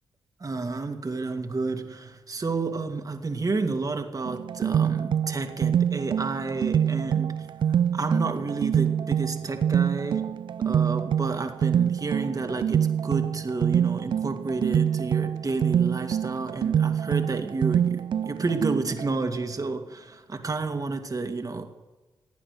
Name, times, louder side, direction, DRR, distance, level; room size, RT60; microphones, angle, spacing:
voice 1, 0.4-7.4 7.7-10.2 10.6-21.7, right 3 dB, 35° right, 5 dB, 2.2 m, -30 dB
sound 1, 4.3-19.1, right 9 dB, 55° right, 0.3 m, -25 dB
16.0 x 9.5 x 6.6 m, 1.2 s
supercardioid pair, 45°, 10 cm